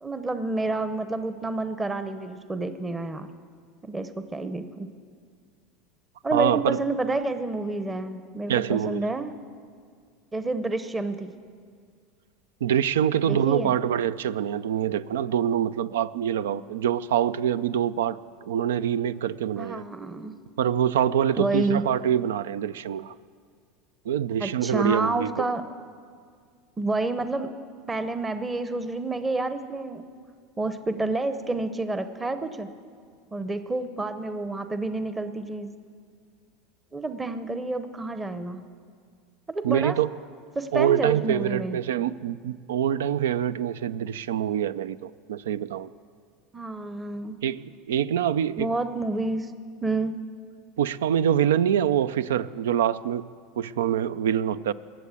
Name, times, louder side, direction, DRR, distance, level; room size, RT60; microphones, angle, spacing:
voice 1, 0.0-3.3 3.8-4.9 6.2-9.4 10.3-11.3 13.3-13.7 19.6-20.3 21.4-21.8 24.4-25.6 26.8-27.5 27.9-30.0 30.6-32.7 33.3-35.7 36.9-38.6 39.5-40.0 40.6-41.8 46.5-47.4 48.6-49.5 49.8-50.2, right 2 dB, 15° right, 10 dB, 0.8 m, -29 dB
voice 2, 6.3-6.8 8.5-9.1 12.6-19.9 20.6-23.1 24.1-25.3 39.6-40.1 40.7-45.9 47.4-48.7 50.8-53.3 53.6-54.7, right 9 dB, 85° right, 17 dB, 0.4 m, -25 dB
21.0 x 7.4 x 8.3 m, 2.1 s
hypercardioid pair, 100°, 0 cm